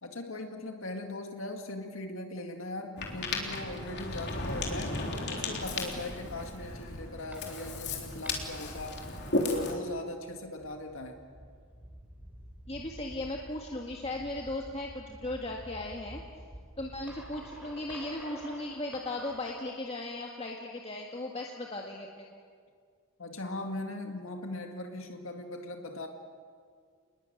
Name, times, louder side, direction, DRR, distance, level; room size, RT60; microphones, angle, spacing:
voice 1, 0.0-5.0 5.3-9.1 9.4-11.3 23.2-26.1, left 2 dB, 70° left, 4 dB, 2.1 m, -39 dB
Ocean, 3.0-9.7, left 2 dB, 55° left, 3.6 m, -35 dB
sound 1, 6.2-19.6, equal, 10° right, 4.0 m, -50 dB
voice 2, 12.7-16.2 16.8-22.4, left 2 dB, 30° left, 0 dB, 1.8 m, -37 dB
28.5 x 21.0 x 9.2 m, 2.1 s
head